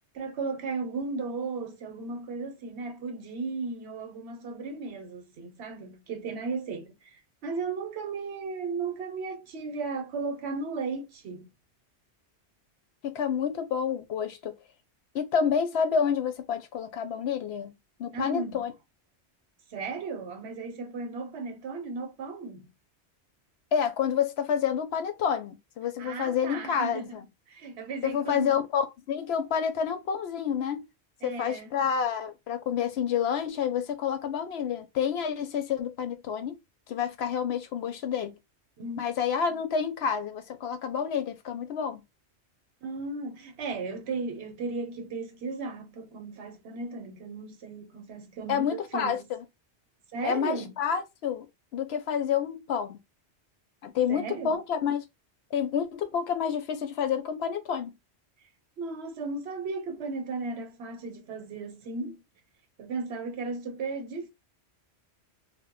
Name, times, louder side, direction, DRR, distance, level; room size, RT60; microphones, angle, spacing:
voice 1, 0.1-7.1 7.4-11.5 18.1-18.6 19.7-22.7 26.0-27.2 27.5-28.5 31.2-31.7 38.8-39.0 42.8-49.2 50.1-50.7 54.1-54.6 58.8-62.2 62.8-64.3, right 4 dB, 75° right, 0.9 m, -35 dB
voice 2, 13.0-14.5 15.1-17.7 18.0-18.7 23.7-27.2 28.0-30.9 31.2-36.6 36.9-38.3 39.0-42.0 48.5-49.4 50.2-51.5 51.7-53.0 53.8-55.0 55.5-57.9, left 7 dB, 70° left, 0.8 m, -29 dB
2.2 x 2.0 x 3.6 m
omnidirectional pair, 1.1 m